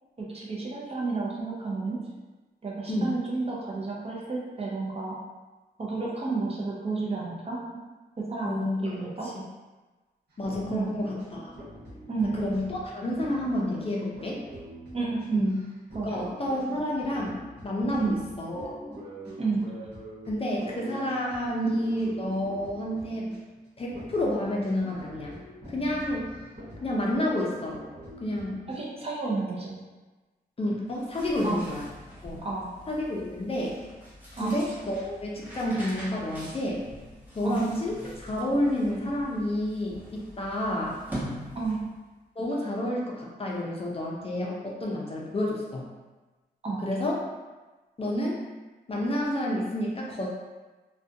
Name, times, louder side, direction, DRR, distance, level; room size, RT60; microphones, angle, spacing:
voice 1, 0.2-2.0 2.6-5.2 5.8-7.6 8.2-9.3 10.7-11.0 12.1-12.4 14.9-15.5 15.9-16.3 18.0-18.2 19.4-19.6 28.7-29.8 31.4-31.6 32.4-32.7 34.4-34.6 37.4-37.6 41.5-41.8 46.6-46.9, right 3 dB, 35° right, -4 dB, 0.5 m, -31 dB
voice 2, 2.9-3.2 8.4-9.0 9.2-9.3 10.4-11.5 12.2-14.4 15.3-15.6 16.0-18.8 20.3-23.3 23.8-25.3 25.7-26.3 26.8-27.8 28.2-28.6 30.6-31.9 32.2-32.4 32.9-33.8 34.4-36.8 37.3-41.0 42.4-45.8 46.8-47.2 48.0-48.4 48.9-50.3, left 1 dB, 35° left, -3 dB, 0.4 m, -29 dB
sound 1, 10.3-23.6 23.9-28.8, equal, 80° right, 1.0 m, -44 dB
sound 2, 30.8-42.0, equal, 10° right, 0.9 m, -43 dB
2.4 x 2.2 x 2.6 m, 1.2 s
wide cardioid pair, 135°, 17 cm